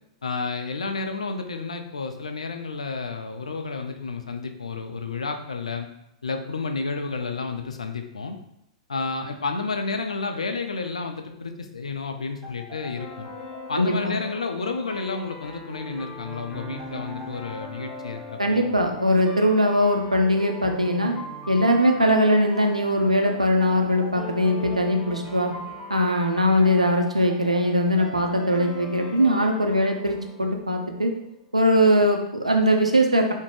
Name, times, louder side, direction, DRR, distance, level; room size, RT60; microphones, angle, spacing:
voice 1, 0.2-5.9 6.2-8.4 8.9-13.3 13.7-18.7, left 4 dB, 75° left, 5 dB, 0.3 m, -31 dB
sound 1, 12.4-31.4, left 1 dB, 10° right, 1.2 m, -40 dB
voice 2, 13.8-14.1 18.4-21.1 21.5-25.5 25.9-31.1 31.5-33.3, equal, 85° right, 3 dB, 0.4 m, -21 dB
2.5 x 2.1 x 3.1 m, 0.80 s
figure-of-eight pair, 105°, 3 cm